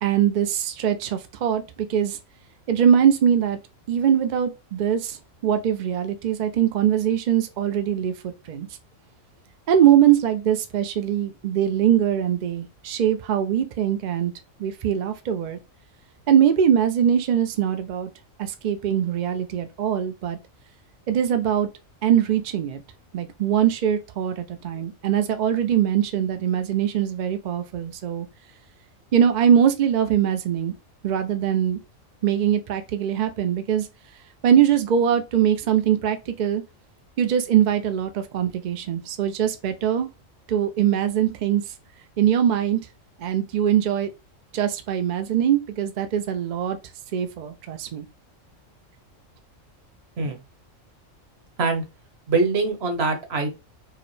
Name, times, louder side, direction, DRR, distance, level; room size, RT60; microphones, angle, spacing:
voice 1, 0.0-2.2 2.7-3.6 3.9-8.7 9.7-14.3 14.6-15.6 16.3-18.1 18.4-20.4 21.1-21.7 22.0-22.8 23.1-28.3 29.1-30.7 31.0-31.8 32.2-33.9 34.4-36.6 37.2-40.1 40.5-41.6 42.2-42.8 43.2-44.1 44.5-46.8 47.1-48.0, right 9 dB, 70° right, 0.4 m, -22 dB
voice 2, 52.3-53.5, right 3 dB, 55° right, 1.1 m, -23 dB
4.7 x 2.1 x 3.1 m
omnidirectional pair, 1.4 m